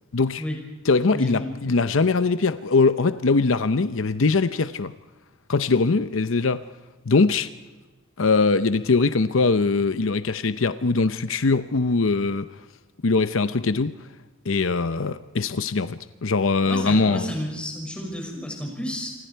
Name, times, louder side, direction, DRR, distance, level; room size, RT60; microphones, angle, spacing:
voice 1, 0.1-0.4 0.8-4.9 5.5-6.6 7.1-7.5 8.2-12.5 13.0-14.0 14.4-17.3, left 3 dB, 70° left, 0.7 m, -21 dB
voice 2, 1.1-1.5 16.6-19.1, equal, 5° left, 5.9 m, -31 dB
28.0 x 24.5 x 4.6 m
head